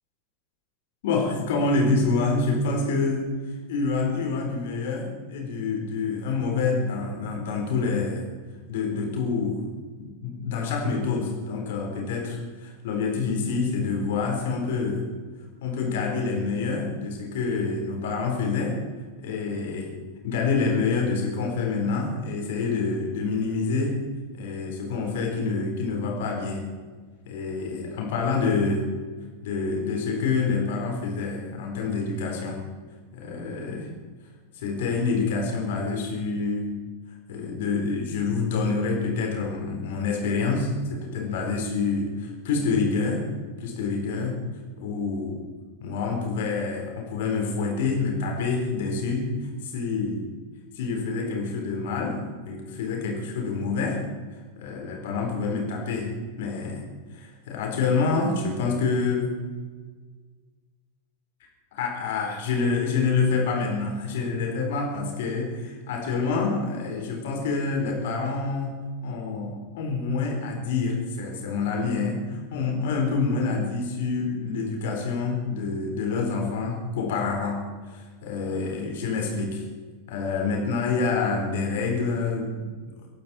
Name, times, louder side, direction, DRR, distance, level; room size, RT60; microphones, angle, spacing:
voice 1, 1.0-3.3 3.7-8.3 8.7-9.7 10.0-15.1 15.6-18.8 19.2-19.9 20.2-24.0 24.3-26.6 27.3-28.9 29.4-32.6 33.1-33.9 34.6-36.7 37.3-43.2 43.6-44.3 44.8-45.4 45.8-49.3 49.6-50.3 50.8-52.2 52.5-54.0 54.6-56.1 56.4-56.8 57.1-59.3 61.7-68.7 69.0-79.6 80.1-82.7, left 4 dB, 55° left, 1 dB, 4.1 m, -27 dB
24.5 x 12.0 x 4.4 m, 1.5 s
figure-of-eight pair, 90°, 0 cm